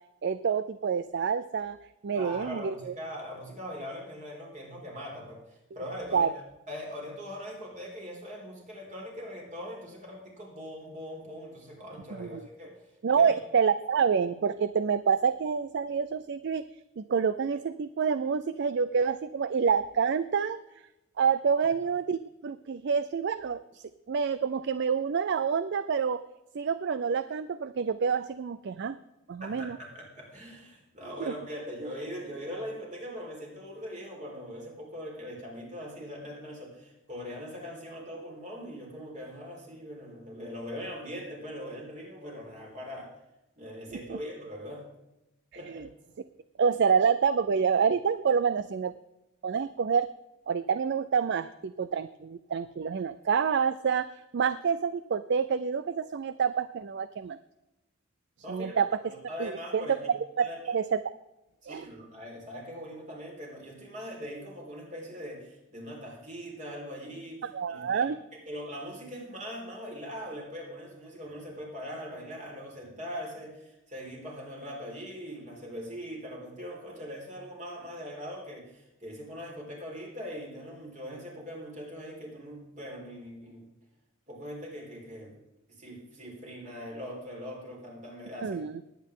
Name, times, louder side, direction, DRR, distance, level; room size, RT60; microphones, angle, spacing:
voice 1, 0.2-1.8 2.0-2.9 6.1-6.3 12.1-12.4 13.0-16.6 17.0-20.6 21.2-26.2 26.5-29.0 29.3-29.8 31.3-31.4 44.1-44.2 45.7-45.9 46.6-48.9 49.4-50.1 50.5-54.1 54.3-57.4 58.5-58.9 59.4-61.0 61.7-61.8 67.5-68.2 88.4-88.8, right 6 dB, 55° right, 13 dB, 0.4 m, -27 dB
voice 2, 2.1-12.7 13.1-13.4 29.4-43.1 43.6-44.8 45.5-45.8 58.4-60.0 60.4-60.7 61.7-68.1 68.5-83.7 84.3-85.3 85.8-88.6, equal, 35° right, -2 dB, 4.5 m, -41 dB
19.0 x 9.2 x 3.8 m, 0.95 s
head